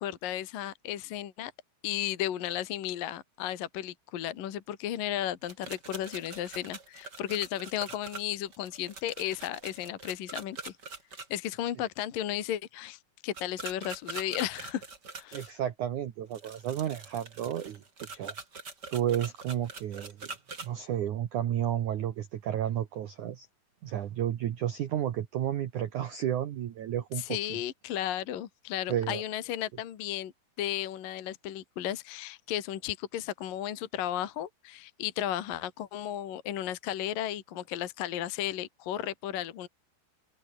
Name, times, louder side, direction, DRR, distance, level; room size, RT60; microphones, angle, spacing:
voice 1, 0.0-1.5 1.8-10.7 11.3-14.8 15.2-15.5 27.2-30.3 30.6-39.7, left 12 dB, 55° left, 2.9 m, -34 dB
sound 1, 5.4-11.3 13.3-15.5 16.3-20.7, right 4 dB, 25° right, 3.2 m, -43 dB
voice 2, 15.3-17.8 18.1-18.3 18.9-20.3 20.6-23.5 23.8-27.4 28.9-29.2, right 10 dB, 85° right, 1.7 m, -32 dB
open air
omnidirectional pair, 5.7 m